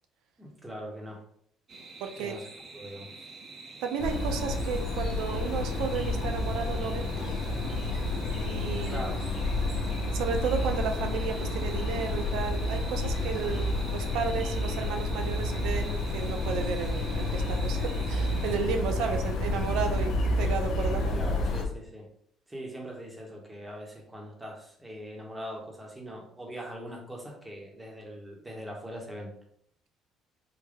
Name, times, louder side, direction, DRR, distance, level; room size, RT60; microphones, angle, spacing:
voice 1, 0.4-1.2 2.2-2.4 2.7-3.3 8.9-9.2 13.4-13.6 21.1-22.1 22.5-29.3, equal, 10° right, 0 dB, 0.9 m, -41 dB
sound 1, 1.7-18.6, right 3 dB, 40° right, 0.7 m, -46 dB
voice 2, 2.0-2.4 3.8-7.1 8.4-9.1 10.1-13.6 13.9-21.1, right 6 dB, 80° right, 5 dB, 0.5 m, -33 dB
sound 2, 4.0-21.6, left 2 dB, 60° left, 0.6 m, -30 dB
3.7 x 2.1 x 3.4 m, 0.65 s
cardioid pair, 120°, 0 cm